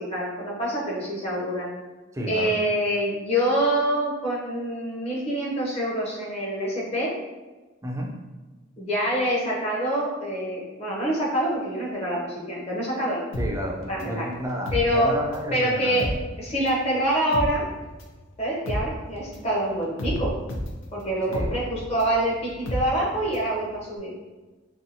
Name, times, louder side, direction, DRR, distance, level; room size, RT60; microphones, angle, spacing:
voice 1, 0.0-1.7 2.3-7.1 8.8-13.2 13.9-14.3 14.7-15.1 15.5-16.1 16.4-17.6 18.4-20.3 20.9-24.1, right 1 dB, 35° left, -4 dB, 0.7 m, -26 dB
voice 2, 2.1-2.5 7.8-8.1 13.4-16.1 21.3-21.5, equal, 15° right, 0 dB, 0.3 m, -31 dB
sound 1, 13.3-15.5 15.8-23.5 23.8-23.9, left 1 dB, 90° left, 0.5 m, -32 dB
2.7 x 2.2 x 2.7 m, 1.2 s
head